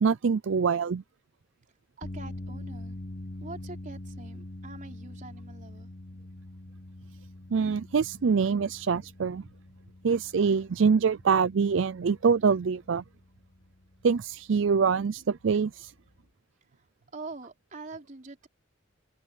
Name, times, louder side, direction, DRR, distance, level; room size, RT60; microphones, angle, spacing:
voice 1, 0.0-1.0 7.5-9.4 10.0-13.0 14.0-15.9, right 5 dB, 65° right, 0.4 m, -25 dB
sound 1, 2.0-16.3, left 1 dB, 45° left, 1.3 m, -45 dB
voice 2, 2.0-3.0 3.4-5.9 17.1-18.5, right 3 dB, 40° right, 3.9 m, -44 dB
open air
head